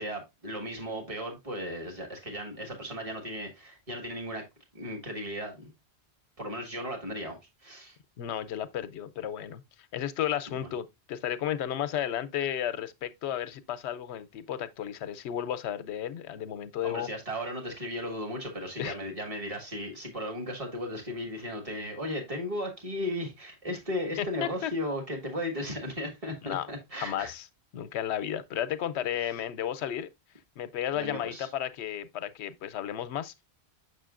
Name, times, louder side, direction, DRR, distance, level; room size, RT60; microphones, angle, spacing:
voice 1, 0.0-4.5 4.7-5.7 6.4-8.0 10.5-10.7 16.8-27.3 30.9-31.5, left 1 dB, 30° right, 1.6 m, -36 dB
voice 2, 8.2-9.6 9.9-17.1 18.8-19.0 24.2-24.7 26.4-26.7 27.0-27.5 27.7-30.1 30.6-33.3, left 10 dB, 90° left, 0.9 m, -33 dB
6.7 x 6.2 x 2.4 m
omnidirectional pair, 1.1 m